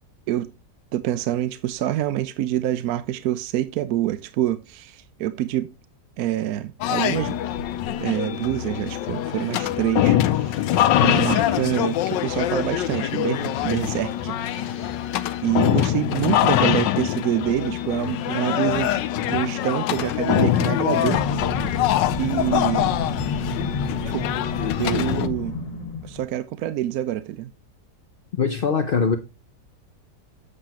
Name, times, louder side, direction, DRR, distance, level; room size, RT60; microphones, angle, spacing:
voice 1, 0.9-5.7 6.2-7.4 8.0-14.9 15.4-21.2 22.2-22.9 24.0-24.3 24.8-25.6 26.0-27.5, right 13 dB, 70° right, 0.9 m, -26 dB
sound 1, 6.8-25.3, left 12 dB, 90° left, 1.3 m, -24 dB
sound 2, 21.1-26.2, left 3 dB, 50° left, 1.9 m, -29 dB
voice 2, 28.4-29.2, left 5 dB, 70° left, 0.5 m, -21 dB
8.2 x 7.6 x 2.8 m
omnidirectional pair, 1.9 m